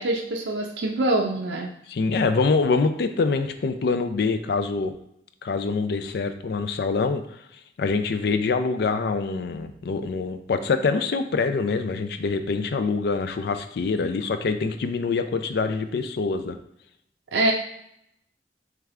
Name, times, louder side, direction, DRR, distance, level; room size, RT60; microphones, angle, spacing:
voice 1, 0.0-1.7 17.3-17.5, right 2 dB, 80° right, 0 dB, 0.4 m, -24 dB
voice 2, 1.9-4.9 5.4-7.4 7.8-16.6, left 4 dB, 65° left, 9 dB, 0.4 m, -25 dB
3.4 x 3.4 x 3.5 m, 0.75 s
head